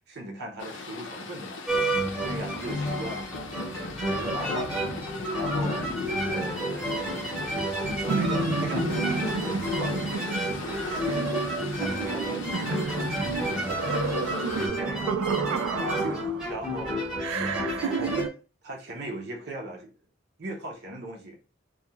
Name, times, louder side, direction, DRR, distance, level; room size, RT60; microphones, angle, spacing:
voice 1, 0.0-1.9 2.2-3.4 3.7-4.8 5.3-7.1 7.8-11.0 11.6-13.9 14.5-15.2 16.0-17.1 17.4-18.2 18.6-19.9 20.4-21.4, right 1 dB, 55° right, 0.7 m, -39 dB
sound 1, 0.6-14.7, left 3 dB, 65° left, 0.5 m, -39 dB
sound 2, 1.7-18.2, equal, 5° right, 0.9 m, -30 dB
sound 3, 8.1-16.6 17.2-18.3, right 5 dB, 80° right, 0.3 m, -31 dB
2.3 x 2.3 x 2.8 m
head